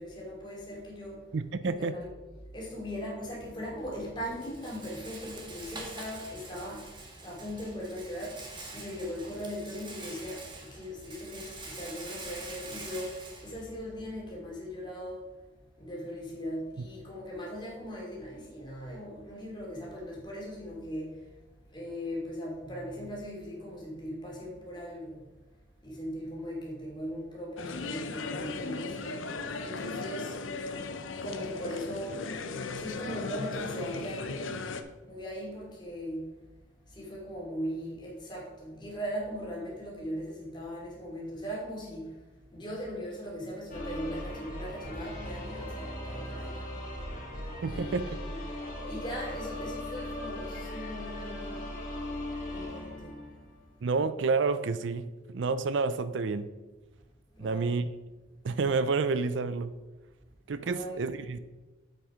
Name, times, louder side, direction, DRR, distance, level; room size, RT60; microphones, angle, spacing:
voice 1, 0.0-1.2 1.6-2.1 2.5-6.9 7.2-15.3 15.8-21.2 21.7-25.2 25.8-29.2 29.6-30.4 31.2-32.3 32.7-34.8 35.0-36.3 36.9-42.2 42.5-46.7 47.6-48.0 48.3-48.4 48.9-51.6 52.5-53.1 57.4-57.7 60.6-61.2, equal, 25° left, 2.8 m, -39 dB
voice 2, 1.3-1.9 47.6-48.2 53.8-56.5 57.4-58.0 58.4-59.7 60.5-61.4, right 4 dB, 70° right, 0.5 m, -29 dB
Rattle, 3.2-14.3, right 2 dB, 25° right, 1.5 m, -46 dB
sound 1, 27.6-34.8, left 3 dB, 85° left, 0.7 m, -37 dB
sound 2, 43.7-53.7, left 1 dB, 45° left, 2.7 m, -39 dB
8.0 x 6.6 x 5.0 m
head